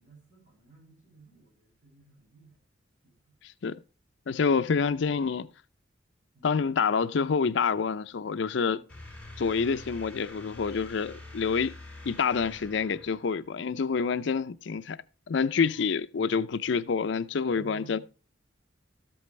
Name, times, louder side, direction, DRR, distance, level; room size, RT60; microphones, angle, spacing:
voice 1, 0.0-2.6 3.0-3.4 6.3-6.6 8.7-8.9 9.8-9.9 15.6-15.8 17.4-18.0, right 5 dB, 45° right, 7.4 m, -54 dB
voice 2, 4.3-5.5 6.4-8.8 9.4-11.7 12.0-15.0 15.3-18.0, left 5 dB, 65° left, 0.5 m, -27 dB
sound 1, 8.9-13.6, left 2 dB, 5° left, 4.0 m, -46 dB
13.0 x 8.6 x 3.2 m
head